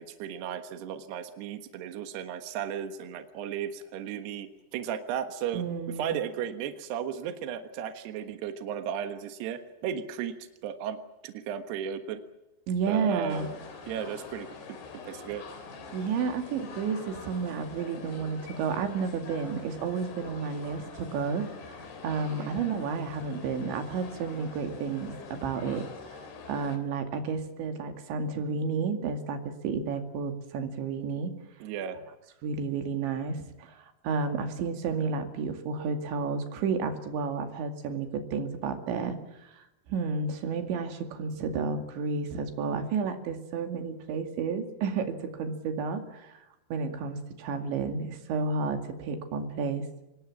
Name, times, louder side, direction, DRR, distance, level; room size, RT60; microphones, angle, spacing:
voice 1, 0.0-10.4 10.6-11.0 11.2-12.2 12.9-13.5 13.9-14.5 15.0-15.4 22.4-22.5 31.6-32.0, right 8 dB, 70° right, 8 dB, 3.4 m, -35 dB
voice 2, 5.5-6.2 12.7-13.5 15.9-26.2 26.5-31.3 32.4-46.4 46.7-49.9, right 5 dB, 90° right, 6 dB, 4.6 m, -31 dB
sound 1, 13.3-26.8, left 4 dB, 90° left, 5.7 m, -45 dB
26.0 x 20.5 x 7.3 m, 0.93 s
omnidirectional pair, 5.1 m